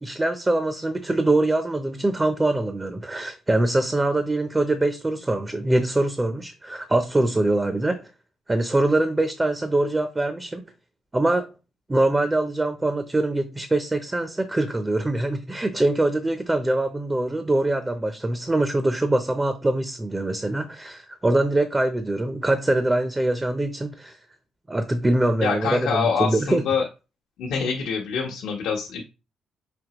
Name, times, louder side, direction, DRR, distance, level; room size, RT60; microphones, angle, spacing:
voice 1, 0.0-8.1 8.5-10.6 11.1-11.5 11.9-24.2 24.7-26.6, right 2 dB, 15° right, 0.5 m, -23 dB
voice 2, 25.4-26.8 27.4-29.0, left 6 dB, 80° left, 0.8 m, -25 dB
5.2 x 2.8 x 2.9 m
cardioid pair, 90°, 0 cm